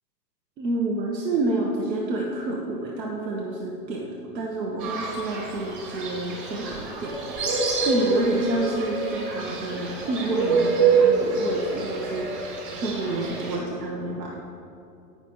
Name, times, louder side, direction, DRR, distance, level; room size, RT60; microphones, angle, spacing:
voice 1, 0.6-14.4, right 2 dB, 90° right, -1 dB, 1.4 m, -29 dB
Fowl, 4.8-13.6, right 4 dB, 30° right, 1.6 m, -26 dB
17.0 x 6.2 x 3.0 m, 2.7 s
hypercardioid pair, 165°, 49 cm